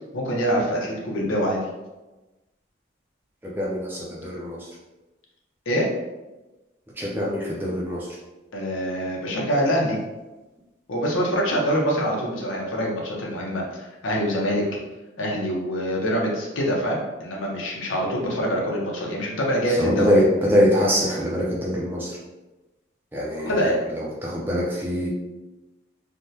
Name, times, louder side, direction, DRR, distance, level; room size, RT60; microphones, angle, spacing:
voice 1, 0.1-1.6 5.7-5.9 8.5-10.0 10.9-14.6 15.2-20.1 23.5-23.8, equal, 85° left, -2 dB, 0.7 m, -25 dB
voice 2, 3.4-4.7 7.0-8.2 19.7-22.2 23.1-25.1, equal, 10° right, -6 dB, 0.5 m, -24 dB
3.4 x 2.1 x 2.7 m, 1.1 s
head